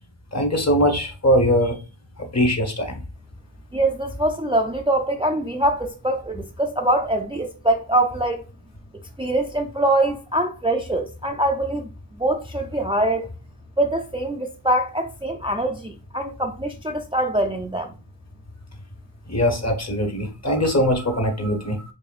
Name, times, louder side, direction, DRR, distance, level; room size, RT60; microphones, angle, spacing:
voice 1, 0.3-1.8 2.2-2.9 19.3-21.8, equal, 35° left, 1.0 m, -21 dB
voice 2, 3.7-8.4 9.2-11.9 12.2-13.3 13.8-17.9, right 1 dB, 15° right, 0.4 m, -23 dB
4.8 x 2.6 x 2.4 m
wide cardioid pair, 45°, 44 cm